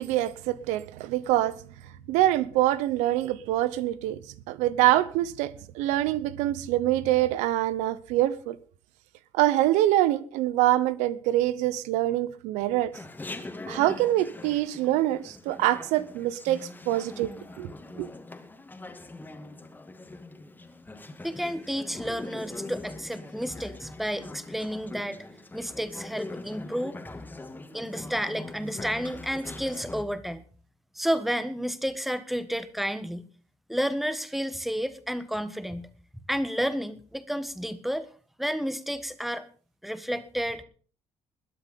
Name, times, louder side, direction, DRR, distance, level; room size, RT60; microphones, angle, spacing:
voice 1, 0.0-1.5 2.1-4.2 4.5-8.6 9.3-12.9 13.7-17.3 17.6-17.7 18.0-18.1, right 14 dB, 90° right, 0.9 m, -25 dB
Chatter, 12.9-30.0, left 2 dB, 15° left, 2.2 m, -42 dB
voice 2, 21.2-25.3 25.5-27.0 27.7-30.4 30.9-33.3 33.7-35.9 36.3-38.1 38.4-39.5 39.8-40.6, equal, ahead, 1.6 m, -31 dB
21.0 x 7.9 x 5.5 m
cardioid pair, 95°, 12 cm